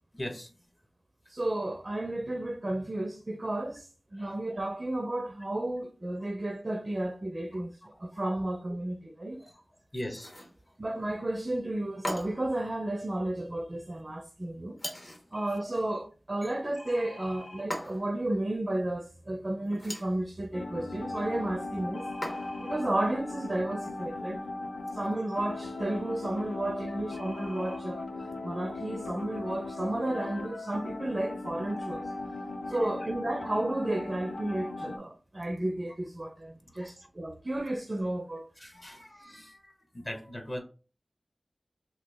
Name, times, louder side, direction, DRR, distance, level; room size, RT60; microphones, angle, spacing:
voice 1, 0.1-0.5 4.2-4.4 7.5-7.6 9.4-9.6 9.9-10.5 15.3-15.4 16.4-16.5 32.4-32.9 36.7-36.9 38.6-40.6, left 1 dB, 30° left, 0.8 m, -41 dB
voice 2, 1.3-9.4 10.8-14.8 15.3-22.0 22.6-24.4 24.9-28.0 28.4-32.1 32.7-38.5, right 1 dB, 35° right, 0.4 m, -32 dB
sound 1, 10.2-10.6 12.0-12.6 14.8-15.3 17.7-18.2 19.7-20.2 22.2-22.7, left 1 dB, 50° left, 1.2 m, -38 dB
sound 2, 15.3-15.6 16.8-17.6 21.9-22.8 27.1-27.8 28.6-28.7 29.0-29.2, left 1 dB, 70° left, 0.9 m, -48 dB
sound 3, 20.5-35.0, left 2 dB, 90° left, 0.4 m, -38 dB
2.9 x 2.3 x 3.3 m
wide cardioid pair, 55°, 0 cm